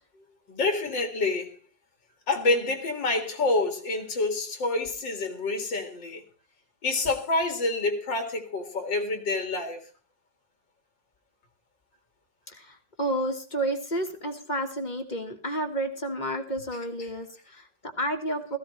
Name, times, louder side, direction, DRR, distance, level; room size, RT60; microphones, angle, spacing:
voice 1, 0.5-1.6 2.3-6.2 6.8-9.8, left 3 dB, 85° left, 2.9 m, -27 dB
voice 2, 12.5-18.6, right 1 dB, 25° left, 1.6 m, -31 dB
17.0 x 15.0 x 3.2 m
omnidirectional pair, 1.9 m